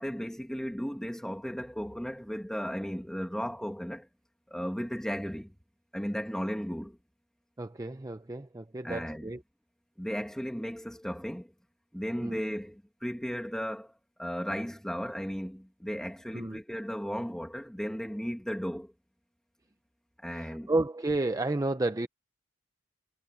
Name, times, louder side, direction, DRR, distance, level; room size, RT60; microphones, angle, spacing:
voice 1, 0.0-4.1 4.5-5.5 5.9-7.0 8.8-9.3 10.0-11.5 11.9-13.9 14.2-18.9 20.2-20.7, equal, 5° left, 1.8 m, -35 dB
voice 2, 7.6-9.4 12.2-12.4 16.3-16.6 20.3-22.1, right 2 dB, 15° right, 0.6 m, -31 dB
head